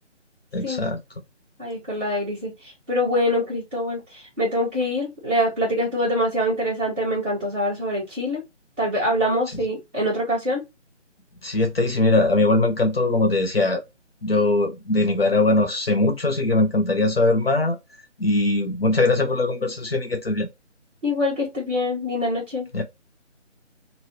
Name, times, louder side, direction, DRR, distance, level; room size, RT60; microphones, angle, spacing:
voice 1, 0.5-1.0 11.4-13.8 14.2-17.8 18.2-20.5 22.7-22.8, left 2 dB, 55° left, 0.7 m, -21 dB
voice 2, 1.6-8.4 8.8-10.6 21.0-22.7, left 1 dB, 10° right, 1.5 m, -24 dB
2.9 x 2.7 x 2.7 m
figure-of-eight pair, 175°, 36 cm